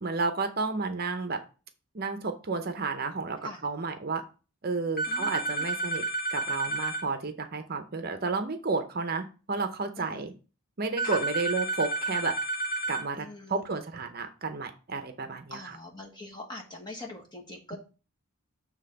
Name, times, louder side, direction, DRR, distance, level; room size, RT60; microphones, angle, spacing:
voice 1, 0.0-1.4 1.9-4.2 4.6-6.0 6.3-10.3 10.8-12.3 12.9-15.8, right 4 dB, 45° right, 7 dB, 0.7 m, -32 dB
sound 1, 5.0-7.0 11.0-13.0, right 2 dB, 45° left, 1.5 m, -31 dB
voice 2, 5.1-5.7 10.0-10.2 11.0-11.2 13.2-13.6 15.5-17.8, left 2 dB, 20° left, 0 dB, 1.3 m, -43 dB
7.3 x 3.5 x 5.6 m, 0.34 s
head